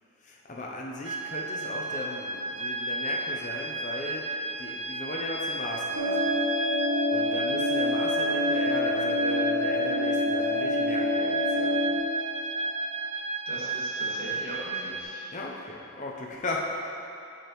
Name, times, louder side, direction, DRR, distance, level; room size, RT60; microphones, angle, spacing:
voice 1, 0.2-6.7 7.1-12.0 15.3-16.6, left 2 dB, 35° left, -2 dB, 0.6 m, -37 dB
sound 1, 1.0-15.0, right 2 dB, 25° right, 0.3 m, -33 dB
sound 2, 5.9-12.0, left 1 dB, 85° right, 1.5 m, -27 dB
voice 2, 13.4-15.3, equal, 45° right, -7 dB, 1.7 m, -40 dB
11.0 x 5.0 x 3.1 m, 2.6 s
head